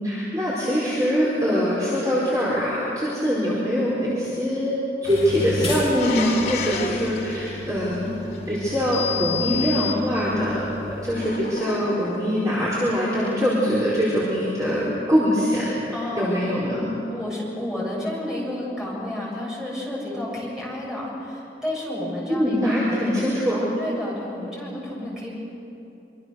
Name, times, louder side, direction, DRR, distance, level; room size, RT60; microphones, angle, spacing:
voice 1, 0.0-8.1 8.5-10.6 11.0-16.9 22.3-23.7, equal, 20° right, -9 dB, 4.5 m, -23 dB
sound 1, 5.0-11.2, left 4 dB, 25° left, 7.2 m, -31 dB
sound 2, 6.0-8.7 11.1-12.5, left 3 dB, 55° left, 2.9 m, -33 dB
voice 2, 10.0-10.4 15.9-16.5 17.1-23.0 23.8-25.4, left 1 dB, 5° right, -6 dB, 7.3 m, -31 dB
25.5 x 25.0 x 6.5 m, 2.9 s
head